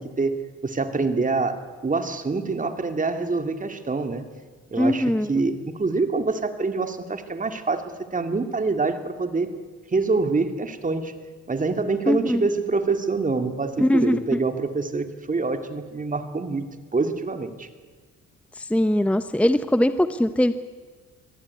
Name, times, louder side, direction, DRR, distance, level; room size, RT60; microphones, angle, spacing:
voice 1, 0.0-4.2 4.7-7.8 8.1-9.6 9.9-11.1 11.5-17.7, right 3 dB, 25° right, 8 dB, 2.2 m, -26 dB
voice 2, 4.8-5.3 12.1-12.5 13.8-14.4 18.6-20.5, left 1 dB, 5° left, 11 dB, 0.8 m, -21 dB
24.0 x 16.5 x 9.5 m, 1.4 s
cardioid pair, 90°, 30 cm